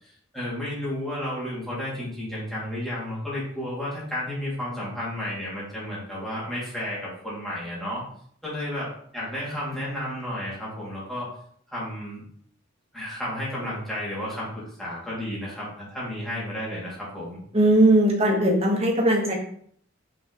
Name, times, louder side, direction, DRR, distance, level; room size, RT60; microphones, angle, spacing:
voice 1, 0.0-8.0 8.4-11.3 11.7-12.2 12.9-17.4, left 1 dB, ahead, -8 dB, 2.8 m, -32 dB
voice 2, 17.5-19.3, right 1 dB, 30° right, -2 dB, 1.6 m, -19 dB
5.7 x 5.3 x 3.2 m, 0.62 s
head